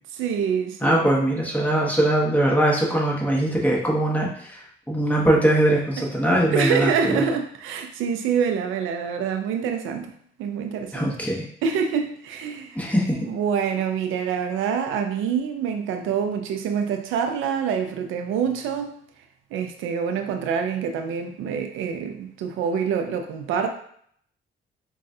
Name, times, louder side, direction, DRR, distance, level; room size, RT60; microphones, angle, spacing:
voice 1, 0.1-1.0 6.5-10.1 10.4-11.1 11.6-12.8 13.2-18.9 19.5-23.7, right 7 dB, 90° right, 5 dB, 0.5 m, -26 dB
voice 2, 0.8-4.6 4.9-7.2 10.9-11.4 12.7-13.2, right 1 dB, 5° left, -3 dB, 1.0 m, -21 dB
4.7 x 2.3 x 2.6 m, 0.63 s
cardioid pair, 90°, 20 cm